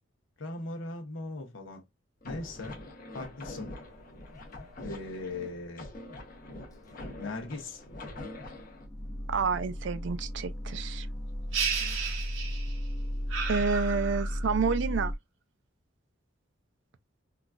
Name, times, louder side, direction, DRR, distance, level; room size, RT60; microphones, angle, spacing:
voice 1, 0.4-1.8 2.2-2.8 3.1-3.7 4.8-5.9 7.2-7.8 11.8-12.2, left 2 dB, 75° left, 0.9 m, -39 dB
sound 1, 2.2-8.9, left 2 dB, 45° left, 0.8 m, -44 dB
sound 2, 3.9-4.6 4.9-5.2 5.6-5.7 5.9-6.0 6.7-15.1, equal, 20° left, 0.6 m, -35 dB
voice 2, 9.3-11.1 11.7-12.2 13.5-15.1, right 5 dB, 60° right, 0.4 m, -30 dB
sound 3, 11.5-12.9 13.3-14.6, right 6 dB, 80° right, 1.0 m, -33 dB
3.7 x 2.4 x 2.2 m
head